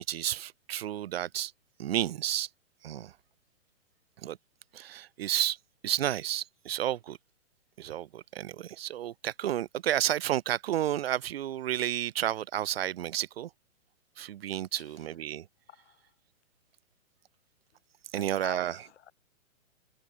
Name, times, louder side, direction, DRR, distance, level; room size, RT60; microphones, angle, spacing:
voice 1, 0.0-1.5 1.8-2.5 2.8-3.1 4.2-4.4 4.7-5.6 5.8-7.2 7.8-13.5 14.2-15.5 18.1-18.8, right 12 dB, 45° right, 1.8 m, -31 dB
voice 2, 14.8-15.1 15.7-16.1 18.1-19.1, left 10 dB, 55° left, 5.4 m, -48 dB
hypercardioid pair, 160°, 40 cm